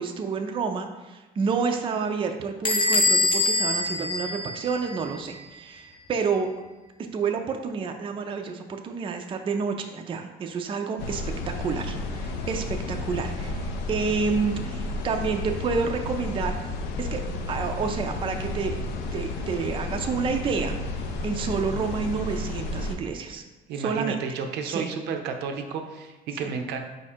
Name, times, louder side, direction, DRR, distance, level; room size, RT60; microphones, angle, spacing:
voice 1, 0.0-6.5 7.1-16.6 17.0-17.2 17.5-18.8 19.1-20.8 21.2-23.4 23.8-24.2 24.6-24.9, right 5 dB, 30° right, 5 dB, 0.4 m, -29 dB
Bell / Door, 2.6-5.1, left 2 dB, 30° left, 0.6 m, -24 dB
sound 1, 11.0-22.9, left 2 dB, 85° left, 0.5 m, -32 dB
voice 2, 23.7-26.8, right 5 dB, 80° right, 5 dB, 0.5 m, -31 dB
4.7 x 2.4 x 4.3 m, 1.1 s
cardioid pair, 110°, 17 cm